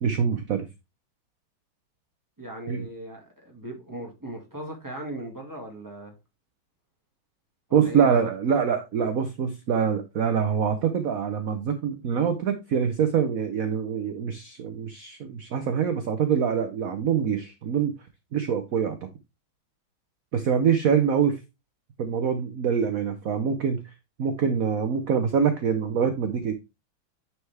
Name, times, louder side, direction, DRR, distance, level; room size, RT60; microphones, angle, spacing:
voice 1, 0.0-0.7 2.7-2.9 7.7-17.9 18.3-19.0 20.3-21.4 22.0-23.8 24.2-26.5, right 7 dB, 60° right, 1.0 m, -25 dB
voice 2, 2.4-6.1 7.7-8.3, right 1 dB, 10° right, 1.9 m, -38 dB
9.6 x 4.6 x 3.4 m
omnidirectional pair, 2.2 m